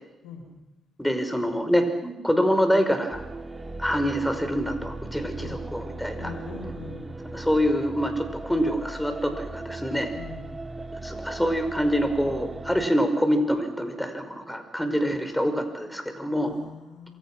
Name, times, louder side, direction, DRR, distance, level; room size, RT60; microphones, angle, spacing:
voice 1, 1.0-3.2 3.8-6.3 7.3-10.1 11.0-16.6, equal, 5° left, 7 dB, 5.5 m, -25 dB
sound 1, 3.1-12.9, right 2 dB, 25° right, 2.7 m, -38 dB
voice 2, 6.2-7.1 10.1-10.5 16.4-17.2, left 4 dB, 85° left, 3 dB, 5.2 m, -41 dB
28.0 x 23.0 x 6.3 m, 0.99 s
hypercardioid pair, 45°, 0 cm